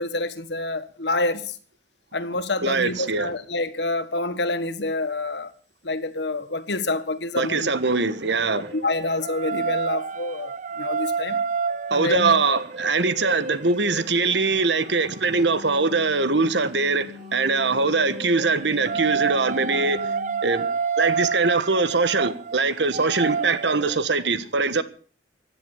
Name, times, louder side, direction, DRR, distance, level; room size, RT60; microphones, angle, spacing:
voice 1, 0.0-1.6 2.1-5.5 5.8-7.7 8.5-11.4 11.9-12.3, left 2 dB, 75° left, 1.6 m, -27 dB
voice 2, 2.6-3.3 7.4-8.7 11.9-20.0 20.4-20.7 21.0-24.8, right 3 dB, 80° right, 1.4 m, -22 dB
sound 1, 7.8-16.0 17.2-24.0, right 5 dB, 45° right, 0.6 m, -30 dB
Wind instrument woodwind instrument, 15.1-20.4, left 6 dB, ahead, 7.0 m, -42 dB
16.0 x 11.0 x 7.1 m
head